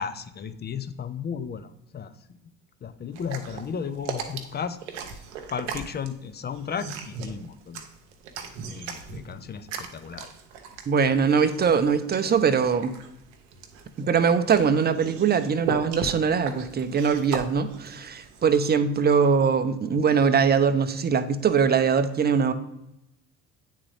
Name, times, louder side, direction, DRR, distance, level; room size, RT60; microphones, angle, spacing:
voice 1, 0.0-2.1 2.8-4.8 5.5-7.9 8.4-10.3, left 7 dB, 30° left, 11 dB, 0.5 m, -34 dB
sound 1, 3.1-18.7, right 5 dB, 85° right, 0.7 m, -38 dB
voice 2, 10.9-12.9 14.0-22.5, right 6 dB, 25° right, 10 dB, 0.6 m, -22 dB
8.6 x 3.7 x 3.3 m, 0.84 s
hypercardioid pair, 65°, 36 cm